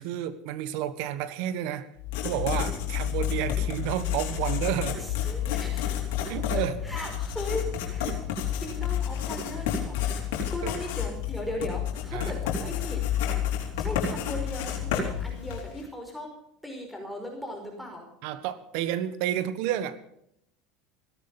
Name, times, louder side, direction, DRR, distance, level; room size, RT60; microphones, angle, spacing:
voice 1, 0.0-1.9 2.2-5.0 6.3-6.7 8.0-8.2 10.6-10.7 12.1-12.3 18.2-20.0, right 11 dB, 70° right, 14 dB, 1.4 m, -31 dB
Writing, 2.0-15.8, left 9 dB, 75° left, 4.0 m, -30 dB
voice 2, 5.0-6.0 6.5-8.0 8.6-10.1 10.5-13.0 13.8-16.3 16.6-18.0, left 1 dB, ahead, 1 dB, 5.1 m, -37 dB
17.0 x 13.5 x 5.5 m, 0.74 s
supercardioid pair, 95°, 0 cm